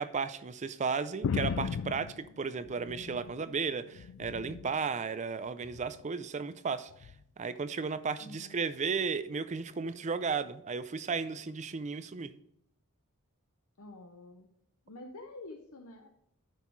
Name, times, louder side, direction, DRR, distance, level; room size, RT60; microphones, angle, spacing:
voice 1, 0.0-7.1 7.4-12.3, right 5 dB, 30° right, 14 dB, 0.4 m, -34 dB
sound 1, 1.2-3.5 3.8-4.8 5.6-6.0 7.0-7.2, left 6 dB, 60° left, 0.3 m, -36 dB
voice 2, 8.2-8.6 13.8-14.5 14.9-16.1, left 2 dB, 75° left, 3 dB, 0.8 m, -48 dB
9.4 x 6.3 x 4.6 m, 0.73 s
head